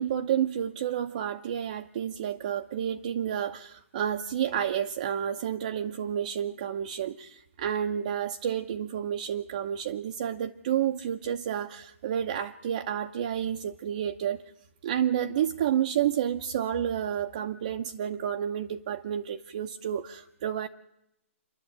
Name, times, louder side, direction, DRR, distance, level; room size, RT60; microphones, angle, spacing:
voice 1, 0.0-14.4 14.8-20.7, right 9 dB, 35° right, 5 dB, 0.8 m, -30 dB
27.5 x 11.5 x 8.8 m, 0.86 s
hypercardioid pair, 170°, 7 cm